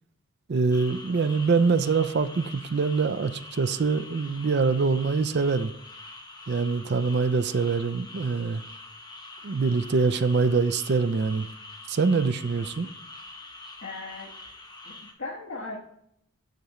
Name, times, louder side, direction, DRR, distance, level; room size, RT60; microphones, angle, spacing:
voice 1, 0.5-5.7 6.5-8.6 9.4-11.5 11.9-12.9, right 4 dB, 50° right, 0.4 m, -24 dB
sound 1, 0.7-15.1, left 2 dB, 20° left, 1.2 m, -45 dB
voice 2, 13.8-14.3 14.8-15.8, left 3 dB, 55° left, 1.5 m, -37 dB
6.9 x 6.5 x 3.0 m
head